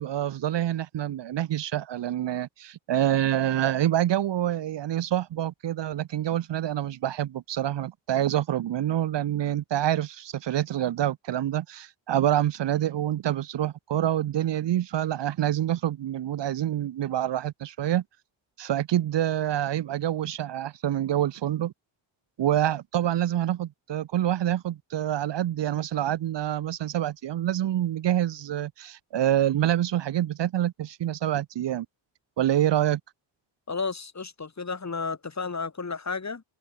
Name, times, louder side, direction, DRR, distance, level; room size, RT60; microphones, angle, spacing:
voice 1, 0.0-18.0 18.6-21.7 22.4-31.9 32.4-33.0, right 12 dB, 60° right, 0.8 m, -26 dB
voice 2, 33.7-36.4, left 4 dB, 35° left, 3.8 m, -32 dB
cardioid pair, 65°, 48 cm